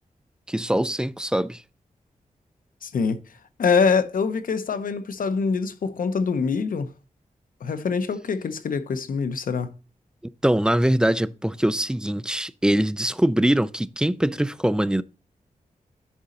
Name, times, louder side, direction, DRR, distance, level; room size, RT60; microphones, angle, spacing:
voice 1, 0.5-1.6 10.4-15.0, right 1 dB, 5° right, 0.3 m, -22 dB
voice 2, 2.8-3.2 3.6-6.9 7.6-9.7, left 5 dB, 75° left, 0.8 m, -24 dB
10.5 x 4.1 x 3.8 m
wide cardioid pair, 100°, 14 cm